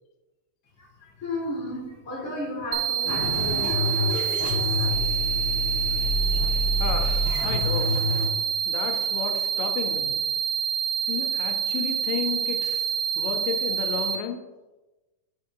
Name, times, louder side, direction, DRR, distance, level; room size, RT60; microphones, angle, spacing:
voice 1, 0.8-5.1, left 1 dB, 25° left, -4 dB, 2.0 m, -35 dB
sound 1, 2.7-14.2, right 8 dB, 90° right, 1.5 m, -27 dB
sound 2, 3.0-8.3, left 2 dB, 55° left, 2.4 m, -27 dB
voice 2, 6.8-8.0 8.7-10.1 11.1-12.8 13.2-14.4, left 7 dB, 85° left, 4 dB, 2.3 m, -32 dB
7.8 x 4.4 x 3.7 m, 1.1 s
omnidirectional pair, 3.8 m